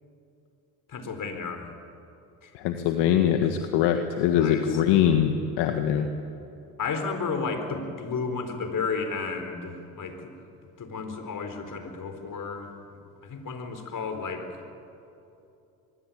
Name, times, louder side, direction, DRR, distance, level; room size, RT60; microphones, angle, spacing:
voice 1, 0.9-1.7 2.4-2.5 4.4-4.8 6.8-10.4 10.6-14.5, left 4 dB, 45° left, 7 dB, 4.4 m, -33 dB
voice 2, 2.5-6.1, left 9 dB, 70° left, 6 dB, 1.7 m, -23 dB
24.5 x 22.0 x 8.8 m, 2.7 s
hypercardioid pair, 65°, 43 cm